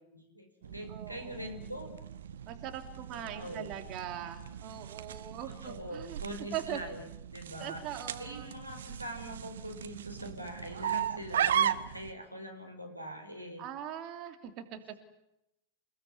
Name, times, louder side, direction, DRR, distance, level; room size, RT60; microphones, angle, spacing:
voice 1, 0.1-1.9 3.1-3.7 5.5-7.8 8.2-13.7, equal, 90° right, 3 dB, 5.5 m, -43 dB
sound 1, 0.6-12.1, right 9 dB, 65° right, 1.3 m, -37 dB
voice 2, 0.9-1.5 2.5-6.2 6.5-6.8 7.6-8.5 13.6-15.0, right 10 dB, 40° right, 6 dB, 2.9 m, -41 dB
29.5 x 18.5 x 9.9 m, 0.85 s
figure-of-eight pair, 90°, 0 cm